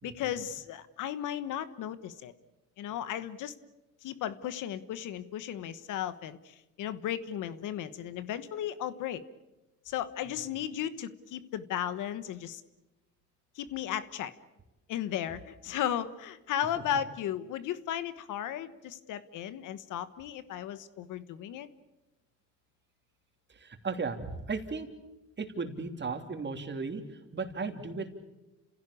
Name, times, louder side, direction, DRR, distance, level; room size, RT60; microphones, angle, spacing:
voice 1, 0.0-2.3 2.8-3.5 4.0-9.2 9.9-12.6 13.6-14.3 14.9-21.7, left 10 dB, 85° left, 14 dB, 1.3 m, -35 dB
voice 2, 23.5-24.9 25.4-28.1, right 4 dB, 35° right, 5 dB, 3.1 m, -36 dB
29.5 x 16.5 x 8.6 m, 1.0 s
cardioid pair, 90°, 30 cm